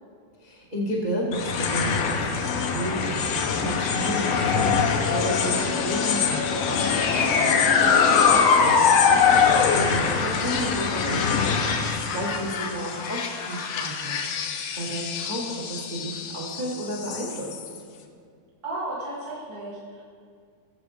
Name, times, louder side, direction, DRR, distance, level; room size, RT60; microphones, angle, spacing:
voice 1, 0.4-2.3 2.7-7.8 8.2-8.4 8.6-17.6, right 1 dB, 55° right, -4 dB, 0.5 m, -32 dB
sound 1, 1.3-17.8, left 6 dB, 70° left, 1.6 m, -23 dB
voice 2, 18.6-20.0, right 2 dB, 40° right, -7 dB, 1.6 m, -34 dB
19.5 x 7.8 x 3.5 m, 2.2 s
omnidirectional pair, 3.6 m